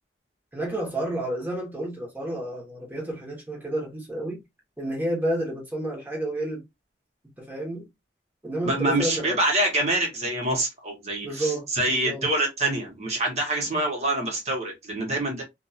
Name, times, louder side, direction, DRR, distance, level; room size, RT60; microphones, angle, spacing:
voice 1, 0.5-4.4 4.8-6.6 7.4-7.9 8.4-9.4 11.2-12.2, right 1 dB, 10° right, 1.1 m, -30 dB
voice 2, 8.6-15.4, right 1 dB, 35° right, 1.2 m, -26 dB
2.6 x 2.4 x 2.7 m
head